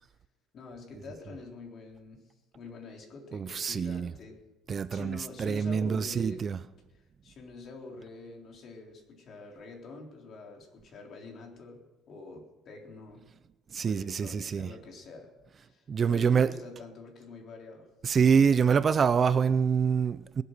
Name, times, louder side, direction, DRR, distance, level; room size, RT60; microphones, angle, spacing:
voice 1, 0.5-2.3 2.5-4.4 4.9-6.5 6.9-13.2 13.8-15.3 15.6-17.9, left 3 dB, 50° left, 3.7 m, -46 dB
voice 2, 3.3-4.1 4.7-6.6 13.7-14.7 15.9-16.5 18.0-20.4, right 6 dB, 35° right, 0.5 m, -25 dB
20.5 x 8.2 x 6.7 m
cardioid pair, 120°, 0 cm